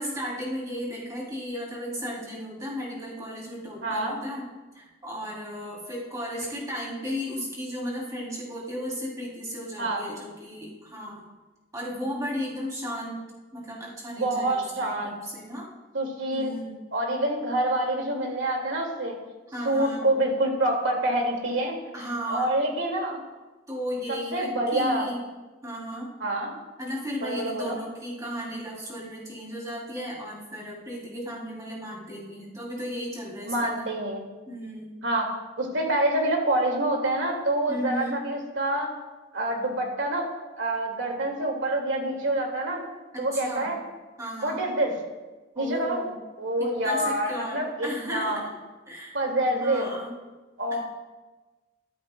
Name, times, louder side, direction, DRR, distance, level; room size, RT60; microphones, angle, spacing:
voice 1, 0.0-4.5 4.7-11.2 11.7-13.2 13.5-15.7 16.3-16.8 19.5-20.1 21.9-22.4 23.7-25.2 25.6-26.1 26.8-33.9 34.5-34.9 37.7-38.2 43.1-43.7 44.2-44.6 45.5-46.2 46.6-48.4 48.9-49.2 49.6-50.1, equal, 15° right, -4 dB, 2.8 m, -35 dB
voice 2, 3.8-4.2 9.8-10.0 14.2-15.1 15.9-16.5 16.9-19.2 19.6-21.8 22.3-23.2 24.1-25.1 26.2-26.6 27.2-27.8 33.5-34.2 35.0-35.3 35.6-38.9 39.3-42.8 43.2-43.8 44.4-45.0 45.6-46.1 46.4-48.4 49.1-49.9 50.6-50.8, right 1 dB, 70° right, 1 dB, 2.1 m, -26 dB
13.5 x 13.0 x 2.2 m, 1.2 s
head